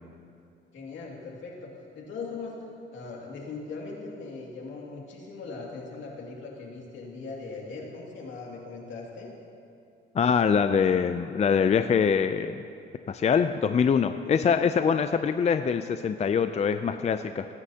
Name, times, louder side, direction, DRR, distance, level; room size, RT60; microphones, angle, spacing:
voice 1, 0.7-2.6 2.9-9.3 14.3-14.5, left 4 dB, 70° left, -2 dB, 2.4 m, -39 dB
voice 2, 10.1-12.6 13.1-17.5, left 6 dB, 35° left, 9 dB, 0.4 m, -24 dB
21.5 x 9.7 x 2.9 m, 2.6 s
cardioid pair, 90°, 20 cm